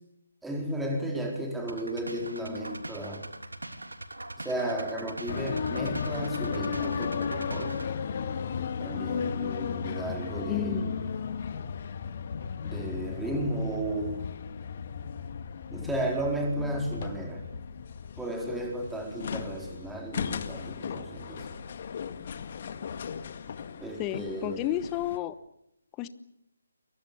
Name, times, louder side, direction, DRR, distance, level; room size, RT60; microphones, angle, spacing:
voice 1, 0.4-3.3 4.4-7.9 8.8-10.9 12.6-14.2 15.7-17.5 18.2-21.6 23.8-24.6, right 1 dB, 5° right, 1 dB, 4.3 m, -34 dB
sound 1, 1.7-7.9, right 1 dB, 80° right, 3.2 m, -41 dB
sound 2, 5.3-25.2, left 6 dB, 40° left, 1.9 m, -35 dB
voice 2, 10.5-10.9 24.0-25.3 26.0-26.1, left 12 dB, 15° left, 14 dB, 1.1 m, -31 dB
29.0 x 23.0 x 7.0 m, 0.79 s
figure-of-eight pair, 150°, 0 cm